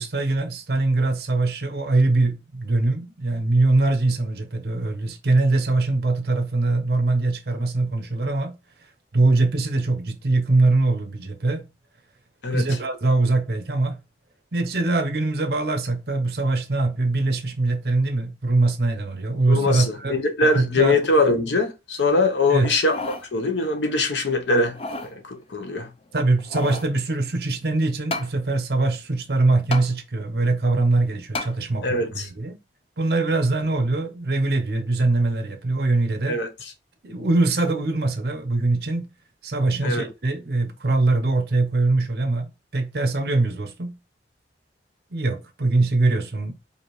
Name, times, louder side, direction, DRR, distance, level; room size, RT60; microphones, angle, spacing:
voice 1, 0.0-8.5 9.1-11.7 12.5-14.0 14.5-20.2 20.5-21.0 22.5-22.8 26.1-32.6 33.0-36.4 37.0-39.1 39.4-43.9 45.1-46.5, right 2 dB, 60° right, 0.8 m, -22 dB
voice 2, 19.5-24.8 25.2-25.9 31.8-32.3 36.3-36.5 39.8-40.0, left 2 dB, 85° left, 0.8 m, -22 dB
sound 1, 22.6-23.3 23.7-23.8 24.6-25.1 26.1-26.9 28.1-28.3 29.7-29.9 31.3-31.5 32.1-32.2, left 2 dB, 30° left, 0.5 m, -31 dB
4.9 x 2.6 x 3.1 m
head